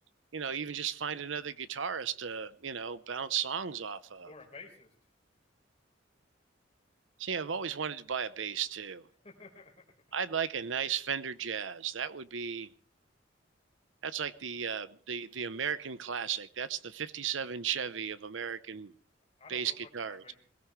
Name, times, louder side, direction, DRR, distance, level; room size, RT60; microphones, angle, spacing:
voice 1, 0.3-4.3 7.2-9.1 10.1-12.7 14.0-18.9 19.5-20.2, right 7 dB, 85° right, 0.8 m, -35 dB
voice 2, 4.2-4.9 9.2-9.7 19.4-20.4, left 3 dB, 35° left, 4.5 m, -51 dB
22.0 x 17.0 x 3.2 m
head